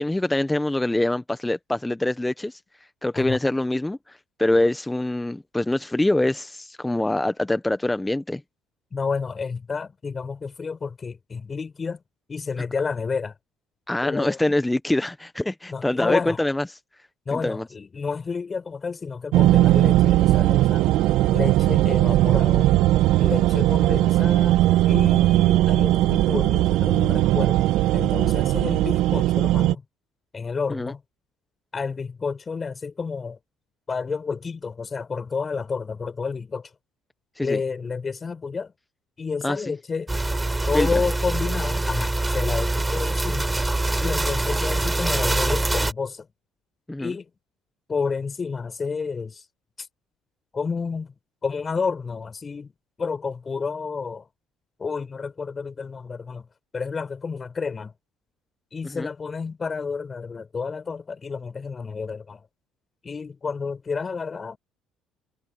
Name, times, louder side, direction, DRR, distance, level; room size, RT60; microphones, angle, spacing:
voice 1, 0.0-2.6 3.0-8.4 13.9-16.6 17.3-17.6 30.7-30.9 37.4-37.6 39.4-39.7 40.6-40.9 46.9-47.1 58.8-59.1, left 1 dB, 10° left, 1.2 m, -24 dB
voice 2, 8.9-12.0 12.3-13.4 14.0-14.4 15.7-16.4 17.2-21.0 21.3-22.7 23.2-24.6 24.8-29.8 30.3-31.0 31.7-33.4 33.9-36.7 37.4-38.7 39.2-40.1 40.7-43.5 44.0-46.3 47.0-47.2 47.9-49.4 49.8-49.9 50.5-51.1 51.4-52.7 53.0-54.3 54.8-56.5 56.7-57.9 58.7-62.5 63.0-64.6, left 5 dB, 35° left, 6.8 m, -30 dB
sound 1, 19.3-29.7, right 15 dB, 70° right, 1.6 m, -19 dB
sound 2, 40.1-45.9, right 2 dB, 15° right, 4.3 m, -24 dB
hypercardioid pair, 65°, 0 cm